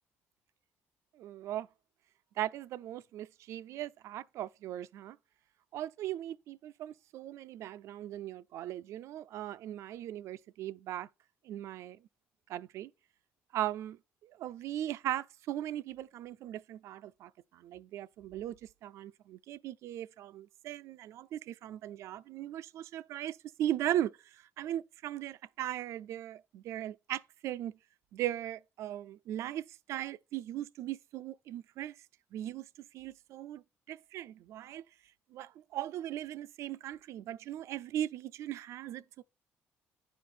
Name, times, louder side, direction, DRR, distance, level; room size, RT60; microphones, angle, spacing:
voice 1, 1.2-1.7 2.4-5.2 5.7-11.1 11.4-12.0 12.5-12.9 13.5-14.0 14.2-24.1 24.6-27.7 28.1-31.9 32.3-32.6 32.9-33.6 33.9-34.8 35.3-39.2, right 12 dB, 75° right, 0.4 m, -38 dB
10.0 x 5.1 x 4.3 m
cardioid pair, 120°, 5 cm